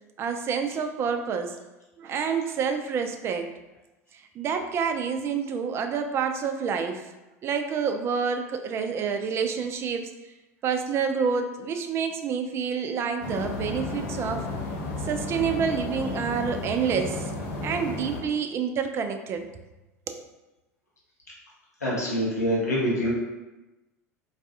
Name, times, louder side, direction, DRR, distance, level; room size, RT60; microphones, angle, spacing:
voice 1, 0.2-1.6 2.0-3.5 4.1-7.1 7.4-10.3 10.6-14.5 15.0-17.3 17.6-19.5 20.1-20.2, right 6 dB, 30° right, 6 dB, 0.3 m, -28 dB
sound 1, 13.2-18.2, left 2 dB, 50° left, 0.6 m, -33 dB
voice 2, 21.8-23.1, equal, 80° left, -6 dB, 0.8 m, -25 dB
3.9 x 2.2 x 2.6 m, 1.1 s
figure-of-eight pair, 75°, 9 cm